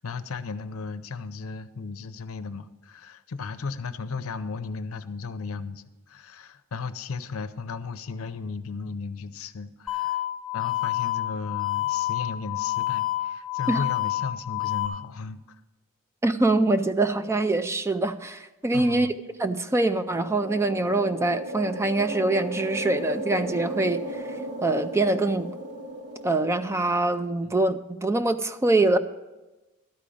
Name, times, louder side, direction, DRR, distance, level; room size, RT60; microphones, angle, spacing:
voice 1, 0.0-10.2 10.5-15.6 18.7-19.1 27.4-27.5, left 4 dB, 70° left, 12 dB, 0.6 m, -35 dB
sound 1, 9.9-14.9, left 15 dB, 5° left, 1.0 m, -28 dB
voice 2, 16.2-19.1 19.4-24.2 24.6-25.5 26.2-29.0, right 2 dB, 10° right, 10 dB, 0.4 m, -24 dB
sound 2, 19.6-27.3, right 1 dB, 80° right, 2.6 m, -35 dB
12.5 x 5.1 x 8.5 m, 1.1 s
head